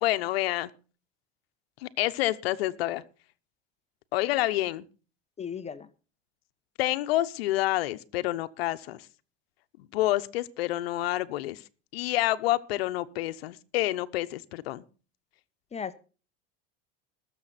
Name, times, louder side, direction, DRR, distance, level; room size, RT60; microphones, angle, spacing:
voice 1, 0.0-0.7 1.8-3.0 4.1-4.9 6.8-9.0 9.8-11.6 11.9-14.8, left 16 dB, 85° left, 13 dB, 0.9 m, -28 dB
voice 2, 5.4-5.9 15.7-15.9, left 7 dB, 20° left, 13 dB, 0.9 m, -36 dB
20.5 x 7.1 x 4.2 m, 0.35 s
supercardioid pair, 110°, 29 cm